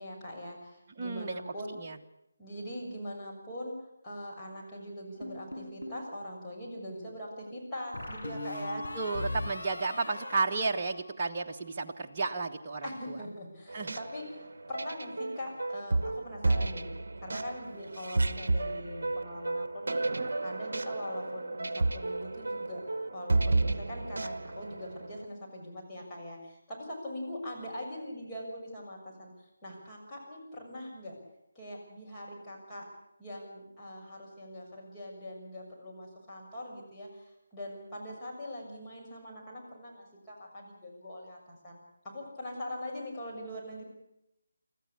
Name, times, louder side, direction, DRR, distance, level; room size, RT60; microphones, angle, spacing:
voice 1, 0.0-1.8 2.4-3.7 4.0-8.9 12.8-16.9 17.2-20.0 20.4-22.8 23.1-31.2 31.6-32.9 33.2-43.8, left 1 dB, 15° left, -5 dB, 6.8 m, -42 dB
voice 2, 1.0-1.4 1.8-2.0 8.9-13.2 13.7-14.0, right 4 dB, 30° right, 1 dB, 1.3 m, -32 dB
sound 1, 5.2-6.1 7.9-11.6, left 1 dB, 85° left, 6.4 m, -40 dB
sound 2, 13.7-25.3, right 2 dB, 60° right, 1.1 m, -32 dB
24.5 x 14.5 x 8.6 m, 0.83 s
figure-of-eight pair, 155°, 0 cm